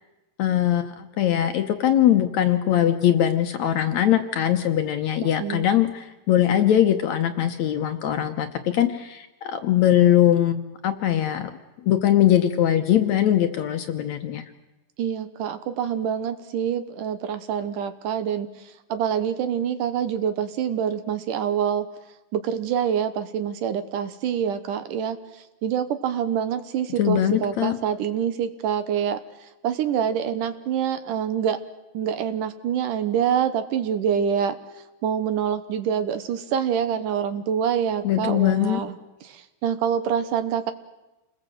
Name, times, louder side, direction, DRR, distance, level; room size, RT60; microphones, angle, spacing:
voice 1, 0.4-11.5 11.8-14.4 27.0-27.8 38.0-38.8, left 11 dB, 65° left, 7 dB, 2.0 m, -21 dB
voice 2, 15.0-21.9 22.3-31.6 31.9-34.6 35.0-39.0 39.2-40.7, right 8 dB, 70° right, 10 dB, 2.6 m, -26 dB
28.5 x 20.5 x 7.8 m, 1.0 s
omnidirectional pair, 4.0 m